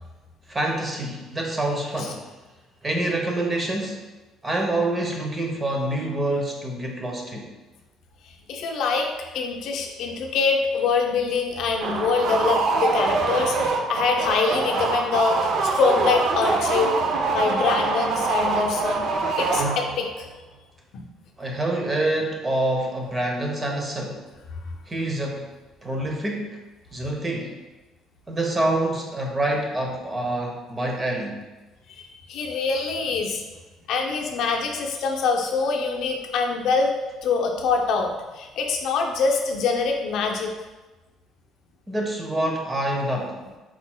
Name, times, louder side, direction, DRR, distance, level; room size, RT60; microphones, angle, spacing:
voice 1, 0.5-2.2 2.8-4.0 4.4-7.5 21.4-24.2 24.9-25.4 25.8-26.6 26.9-27.5 28.3-31.4 41.9-43.6, right 1 dB, 20° right, 1 dB, 0.7 m, -26 dB
voice 2, 8.5-17.0 17.3-19.0 19.4-20.3 20.9-21.0 31.9-32.0 32.3-33.4 33.9-36.9 37.2-38.1 38.3-40.5, left 4 dB, 65° left, 2 dB, 0.5 m, -24 dB
sound 1, 11.8-20.1, right 3 dB, 60° right, 0.5 m, -24 dB
4.4 x 4.0 x 2.2 m, 1.2 s
cardioid pair, 120°, 0 cm